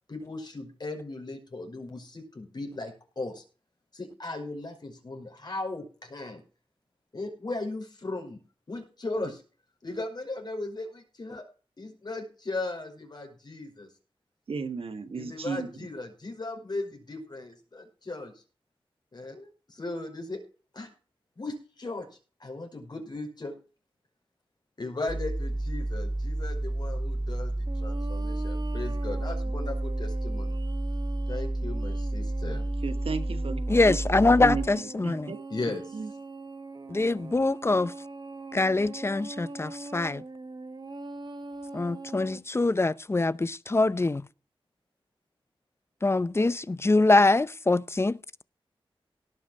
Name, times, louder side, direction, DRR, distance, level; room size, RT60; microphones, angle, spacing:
voice 1, 0.1-3.4 3.9-6.4 7.1-8.4 8.7-9.4 9.8-11.4 11.8-13.9 15.1-18.4 19.1-20.4 20.7-20.9 21.4-22.1 22.4-23.5 24.8-30.6 31.3-32.7 35.5-35.9, left 2 dB, 50° left, 5.5 m, -37 dB
voice 2, 14.5-15.7 32.8-34.0 34.4-34.7 35.0-35.4 35.9-36.1, right 4 dB, 80° right, 1.6 m, -34 dB
sound 1, 25.1-34.7, right 1 dB, 10° right, 2.8 m, -31 dB
sound 2, 27.7-42.4, right 3 dB, 50° right, 1.6 m, -42 dB
voice 3, 33.7-35.3 36.9-37.9 38.5-40.2 41.7-44.2 46.0-48.2, left 2 dB, 25° left, 0.6 m, -24 dB
18.0 x 6.2 x 5.4 m
wide cardioid pair, 95°, 10 cm